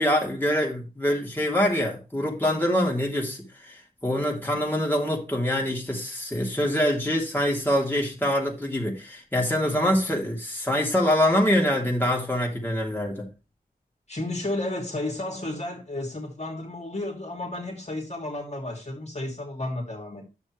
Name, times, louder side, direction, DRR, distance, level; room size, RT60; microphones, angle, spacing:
voice 1, 0.0-13.3, left 1 dB, 15° left, 3.1 m, -25 dB
voice 2, 14.1-20.2, left 2 dB, 40° left, 2.7 m, -32 dB
9.8 x 7.3 x 3.3 m
cardioid pair, 45°, 16 cm